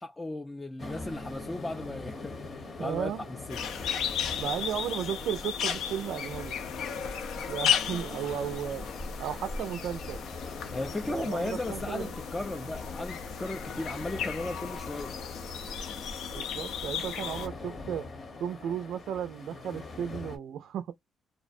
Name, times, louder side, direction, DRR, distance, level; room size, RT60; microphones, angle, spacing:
voice 1, 0.0-3.8 10.7-15.2, left 2 dB, 15° left, 0.4 m, -36 dB
sound 1, 0.8-20.4, left 3 dB, 50° left, 0.9 m, -44 dB
sound 2, 0.8-8.6, equal, 20° right, 0.6 m, -52 dB
voice 2, 2.8-3.2 4.2-6.5 7.5-8.8 9.2-10.2 11.1-12.1 16.3-18.1 18.4-20.9, right 9 dB, 75° right, 0.3 m, -34 dB
sound 3, 3.5-17.5, left 8 dB, 80° left, 0.6 m, -35 dB
2.6 x 2.1 x 2.4 m
cardioid pair, 90°, 0 cm